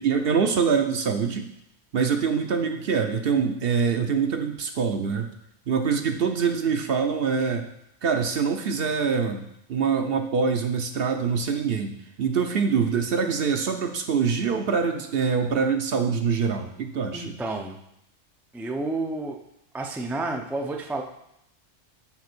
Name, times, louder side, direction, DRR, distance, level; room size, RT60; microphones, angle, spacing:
voice 1, 0.0-1.5 1.9-5.3 5.7-7.7 8.0-17.3, right 6 dB, 60° right, 6 dB, 0.8 m, -24 dB
voice 2, 17.1-17.8 18.5-19.4 19.7-21.0, right 2 dB, 5° right, 2 dB, 0.3 m, -30 dB
5.9 x 4.9 x 6.0 m, 0.78 s
omnidirectional pair, 1.3 m